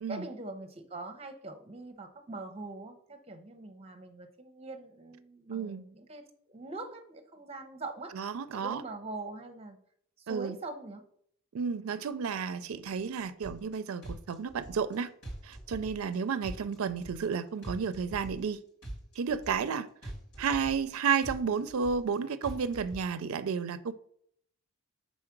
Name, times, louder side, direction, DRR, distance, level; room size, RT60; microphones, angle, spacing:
voice 1, 0.1-8.2 8.5-9.8 10.2-11.0, right 2 dB, 25° right, 0.7 m, -43 dB
voice 2, 5.5-5.9 8.2-8.8 10.3-10.6 11.5-15.1 15.4-18.6 19.2-19.9 20.4-23.9, right 6 dB, 70° right, 0.4 m, -32 dB
sound 1, 13.4-13.7 14.0-14.9 15.2-16.1 16.4-17.3 17.6-18.5 18.8-19.7 20.0-20.9 21.2-22.1 22.4-23.0, right 1 dB, 90° left, 2.8 m, -43 dB
4.8 x 4.2 x 5.8 m
head